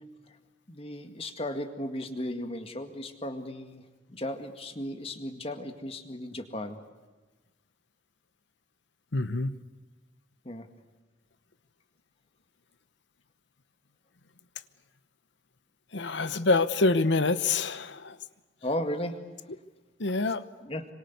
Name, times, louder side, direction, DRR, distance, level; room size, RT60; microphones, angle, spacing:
voice 1, 0.7-6.8 10.4-10.7 18.6-19.2 20.6-20.9, left 1 dB, 30° left, 7 dB, 2.0 m, -35 dB
voice 2, 9.1-9.6 15.9-18.2 20.0-20.4, left 3 dB, 70° left, 13 dB, 1.0 m, -26 dB
26.5 x 25.0 x 8.3 m, 1.3 s
head